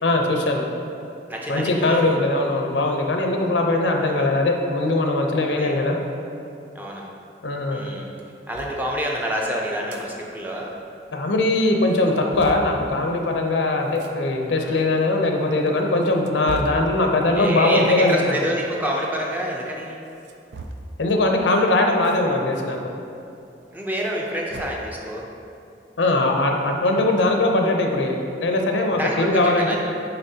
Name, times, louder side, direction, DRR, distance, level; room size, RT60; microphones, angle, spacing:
voice 1, 0.0-0.6 1.5-6.0 7.4-7.8 11.1-18.4 21.0-22.8 26.0-29.8, left 2 dB, 80° left, 2 dB, 0.6 m, -21 dB
voice 2, 1.3-2.0 4.0-4.2 5.6-5.7 6.7-7.1 7.7-8.1 8.5-10.7 14.6-14.8 17.3-20.0 23.7-25.3 28.9-29.8, equal, 10° right, -2 dB, 0.5 m, -27 dB
sound 1, 8.5-8.8 9.7-10.1 10.4-10.5 10.8-10.9 11.4-11.5 11.9-12.7 13.9-14.1 15.0-15.1 15.8-16.9 18.0-18.3 20.1-21.0 22.0-22.2 22.6-22.7 24.0-24.9, right 2 dB, 70° right, 0.4 m, -37 dB
8.9 x 4.0 x 2.8 m, 2.6 s
head